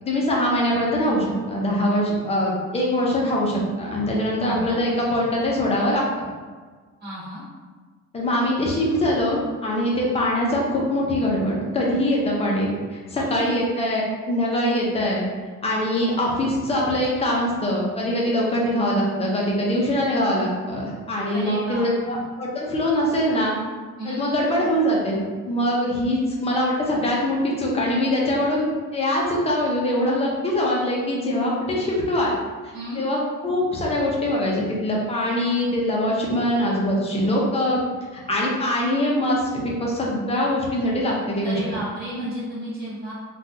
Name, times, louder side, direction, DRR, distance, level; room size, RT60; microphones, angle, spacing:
voice 1, 0.0-6.0 8.1-15.2 15.6-23.6 24.0-32.4 32.9-37.8 38.3-41.8, left 1 dB, 20° left, -3 dB, 0.6 m, -23 dB
voice 2, 4.4-4.8 7.0-7.4 13.1-13.6 21.3-21.8 24.0-24.2 32.7-33.0 41.4-43.1, equal, 30° right, -11 dB, 1.3 m, -32 dB
3.7 x 2.3 x 2.7 m, 1.5 s
cardioid pair, 160°, 29 cm